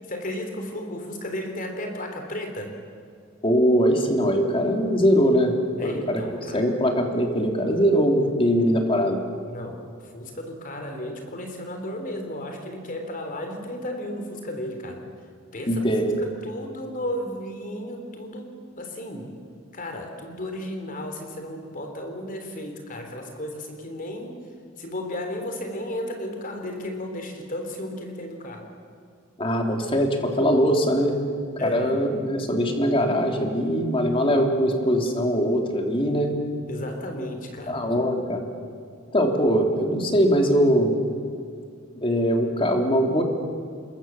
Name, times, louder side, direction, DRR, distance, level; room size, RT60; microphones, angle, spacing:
voice 1, 0.1-2.7 5.8-6.7 9.5-15.0 15.5-19.3 19.7-24.4 24.8-28.7 31.6-32.0 36.7-37.8, left 1 dB, 40° left, 4 dB, 3.3 m, -34 dB
voice 2, 3.4-5.5 5.8-6.2 6.5-9.2 15.7-16.2 29.4-31.2 31.6-36.3 37.7-38.4 39.1-40.9 42.0-43.2, equal, 25° left, 3 dB, 3.1 m, -21 dB
26.5 x 22.5 x 7.2 m, 2.3 s
head